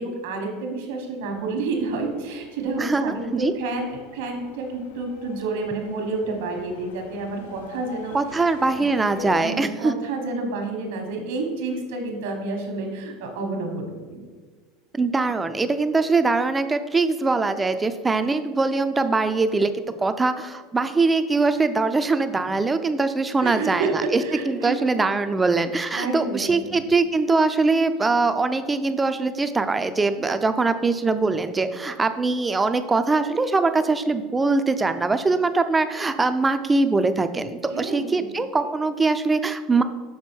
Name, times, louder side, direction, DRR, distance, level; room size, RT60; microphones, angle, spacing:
voice 1, 0.0-8.5 8.7-8.8 9.4-14.2 23.4-24.7 25.9-26.9 37.7-38.2, right 3 dB, 85° right, 3 dB, 1.2 m, -29 dB
sound 1, 1.2-9.4, left 8 dB, 85° left, 0.5 m, -44 dB
voice 2, 2.8-3.5 8.1-9.9 14.9-39.8, right 3 dB, 15° right, 10 dB, 0.3 m, -22 dB
6.1 x 3.5 x 4.4 m, 1.4 s
supercardioid pair, 135°, 0 cm